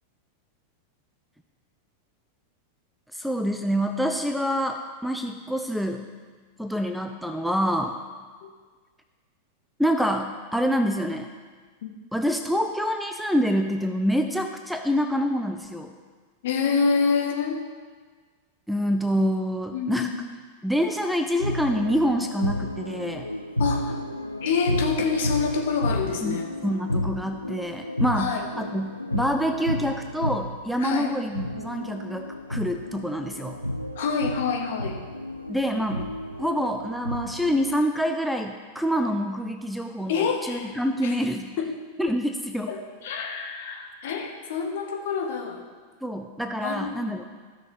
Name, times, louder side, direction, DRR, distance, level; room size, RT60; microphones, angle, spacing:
voice 1, 3.1-6.1 6.6-8.0 9.8-11.3 12.1-15.9 18.7-20.1 20.6-23.3 26.2-33.6 35.5-36.1 36.4-41.5 42.0-42.7 46.0-47.2, equal, ahead, 6 dB, 0.5 m, -26 dB
voice 2, 16.4-17.6 19.7-20.2 23.6-23.9 24.4-26.5 27.2-27.3 28.1-28.4 30.8-31.1 33.9-35.0 39.1-39.2 40.1-40.7 41.0-41.2 41.6-41.7 42.7-42.8 43.0-45.6 46.6-47.0, left 5 dB, 55° left, 1 dB, 1.4 m, -27 dB
sound 1, 21.4-37.7, left 1 dB, 90° left, 0.4 m, -32 dB
14.5 x 6.3 x 3.4 m, 1.5 s
figure-of-eight pair, 90°, 0 cm